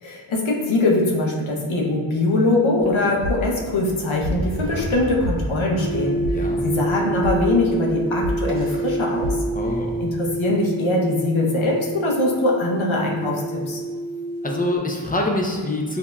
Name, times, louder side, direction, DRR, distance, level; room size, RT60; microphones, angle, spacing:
voice 1, 0.0-9.4 10.0-13.8, left 2 dB, 75° left, -1 dB, 0.9 m, -22 dB
sound 1, 2.8-9.3, equal, 50° right, 0.9 m, -30 dB
sound 2, 5.8-14.8, right 2 dB, 75° right, 0.6 m, -28 dB
voice 2, 6.3-6.8 9.5-10.0 14.4-16.0, left 1 dB, 20° left, 0 dB, 0.7 m, -25 dB
7.2 x 2.8 x 2.3 m, 1.5 s
wide cardioid pair, 75°, 48 cm